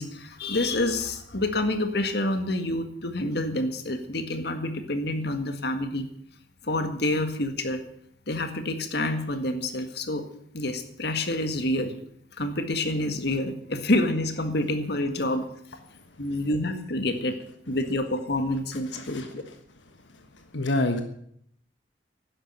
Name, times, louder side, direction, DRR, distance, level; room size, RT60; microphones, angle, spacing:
voice 1, 0.0-6.1 6.6-7.8 8.3-10.2 10.5-12.0 12.4-15.4 16.2-17.4 17.7-19.4, left 1 dB, 60° left, 7 dB, 1.8 m, -28 dB
voice 2, 18.9-19.3 20.5-21.0, left 2 dB, 80° left, 6 dB, 1.4 m, -26 dB
12.0 x 10.5 x 8.9 m, 0.69 s
head